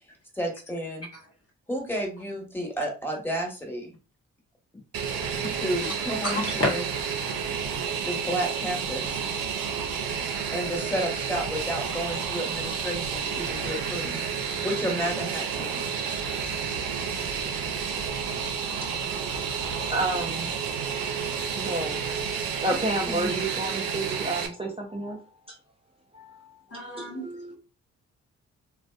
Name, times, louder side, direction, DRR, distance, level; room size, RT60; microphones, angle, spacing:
voice 1, 0.3-1.1 1.7-3.9 5.5-6.8 8.0-9.3 10.5-14.2 14.6-15.9 23.0-23.4, equal, 5° left, 1.2 m, -31 dB
Fixed-wing aircraft airplane, 4.9-24.5, right 6 dB, 75° right, 0.5 m, -30 dB
voice 2, 6.2-6.8 19.7-19.8 26.7-27.2, left 1 dB, 45° left, 0.9 m, -29 dB
voice 3, 19.5-20.5 21.6-25.2 26.1-26.5 27.0-27.5, right 2 dB, 15° right, 0.6 m, -31 dB
2.4 x 2.2 x 2.3 m
hypercardioid pair, 40°, 35 cm